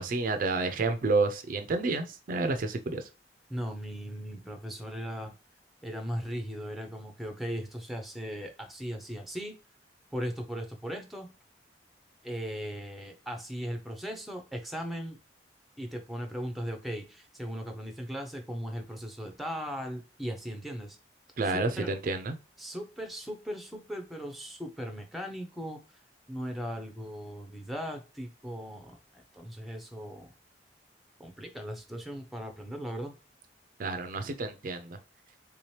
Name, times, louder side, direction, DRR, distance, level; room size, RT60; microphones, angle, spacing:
voice 1, 0.0-3.0 21.4-22.3 33.8-35.0, right 3 dB, 50° right, 7 dB, 0.4 m, -29 dB
voice 2, 3.5-5.3 5.8-9.6 10.1-11.3 12.2-15.2 15.8-21.0 21.4-21.9 22.6-25.8 26.3-30.3 31.2-33.2, equal, ahead, 4 dB, 0.5 m, -38 dB
3.4 x 2.8 x 3.1 m, 0.31 s
head